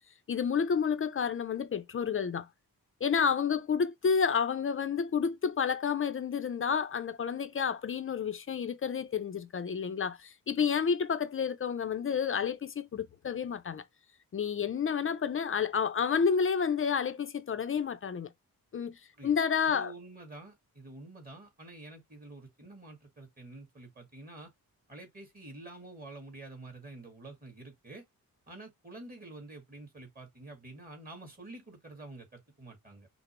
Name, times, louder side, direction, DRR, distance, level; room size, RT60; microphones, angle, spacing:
voice 1, 0.3-2.5 3.0-13.8 14.3-18.3 18.7-19.9, left 6 dB, 40° left, 0.5 m, -30 dB
voice 2, 19.7-24.5 24.9-28.1 28.5-33.1, right 2 dB, 25° right, 1.7 m, -48 dB
5.8 x 2.0 x 3.1 m
wide cardioid pair, 155°, 35 cm